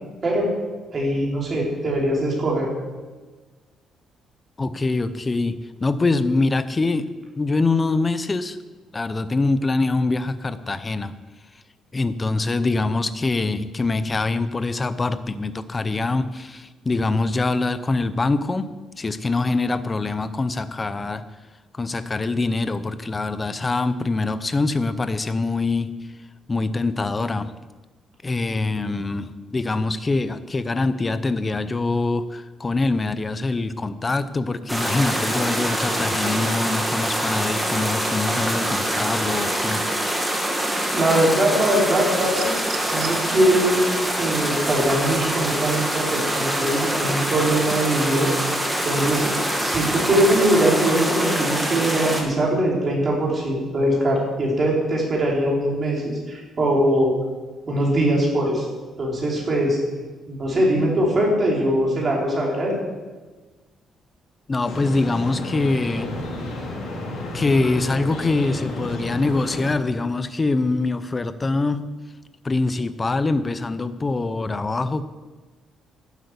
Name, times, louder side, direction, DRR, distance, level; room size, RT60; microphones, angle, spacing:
voice 1, 0.9-2.7 40.9-42.5 42.9-43.8 44.2-48.3 48.8-49.3 49.6-57.1 57.7-58.7 59.0-59.8 60.3-62.7, right 1 dB, 30° right, -3 dB, 3.8 m, -21 dB
voice 2, 4.6-7.1 7.4-8.6 8.9-11.2 11.9-18.7 18.9-21.2 21.7-25.9 26.5-27.5 28.2-39.8 64.5-66.1 67.3-71.9 72.4-75.0, left 3 dB, 20° left, 12 dB, 0.6 m, -24 dB
sound 1, 34.7-52.2, right 1 dB, 5° right, 1.8 m, -24 dB
sound 2, 42.2-43.2 44.7-44.9, right 7 dB, 60° right, 1.6 m, -36 dB
sound 3, 64.6-69.7, left 1 dB, 80° left, 4.3 m, -31 dB
12.0 x 8.2 x 8.1 m, 1.3 s
cardioid pair, 170°, 0 cm